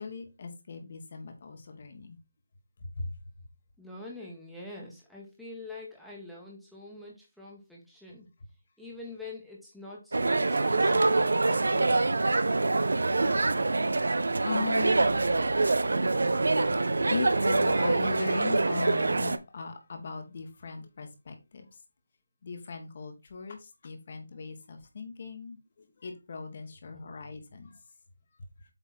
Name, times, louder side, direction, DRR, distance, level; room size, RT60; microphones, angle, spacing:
voice 1, 0.0-2.2 3.0-3.1 14.4-15.0 17.1-21.7 22.4-25.6 26.0-27.7, left 4 dB, 40° left, 1.6 m, -38 dB
voice 2, 3.8-8.3 8.8-12.3 26.8-26.9, left 2 dB, ahead, 1.5 m, -45 dB
sound 1, 10.1-19.4, right 3 dB, 75° right, 0.7 m, -25 dB
8.2 x 3.5 x 4.3 m
figure-of-eight pair, 170°, 0 cm